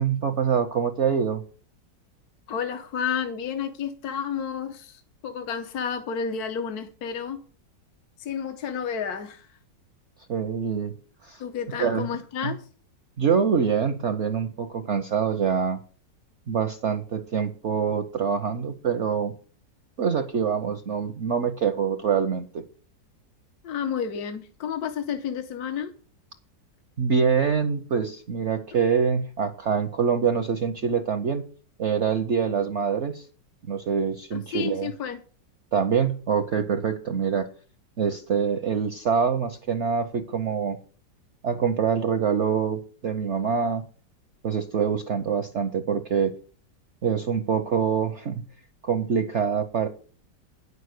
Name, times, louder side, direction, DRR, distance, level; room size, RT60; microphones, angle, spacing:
voice 1, 0.0-1.4 10.3-10.9 11.2-11.4 11.8-12.1 12.4-12.5 13.2-15.8 16.5-19.3 20.0-22.6 27.0-31.4 31.8-33.3 33.7-34.9 35.7-37.5 38.0-40.8 41.4-43.8 44.4-46.3 47.0-48.4 48.8-49.9, right 6 dB, 55° right, 0.9 m, -25 dB
voice 2, 2.5-7.4 8.2-9.5 11.4-12.6 23.6-25.9 34.3-35.2, left 7 dB, 65° left, 1.4 m, -31 dB
9.9 x 6.7 x 6.5 m
omnidirectional pair, 1.9 m